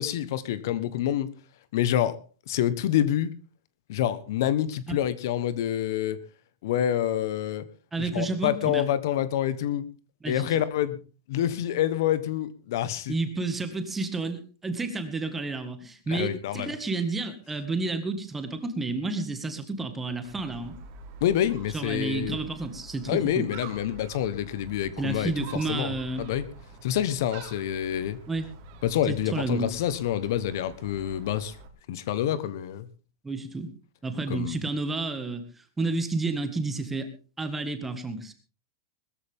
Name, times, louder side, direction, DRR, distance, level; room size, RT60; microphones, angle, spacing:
voice 1, 0.0-1.3 1.7-2.2 2.5-3.3 3.9-6.2 6.6-7.6 8.0-9.9 10.3-11.0 11.3-13.2 16.1-16.7 21.2-22.4 23.1-25.3 25.7-26.4 26.8-28.2 28.8-31.5 31.9-32.8 34.3-34.6, left 11 dB, 60° left, 1.2 m, -27 dB
voice 2, 7.9-8.9 10.2-10.5 13.1-20.7 21.7-23.5 25.0-26.3 28.3-28.5 29.1-29.7 33.2-33.7 34.0-37.1 37.4-38.3, right 3 dB, 10° right, 1.9 m, -30 dB
Gull seagull, 20.2-31.7, right 3 dB, 40° right, 3.1 m, -46 dB
20.5 x 14.0 x 3.7 m
supercardioid pair, 165°, 2 cm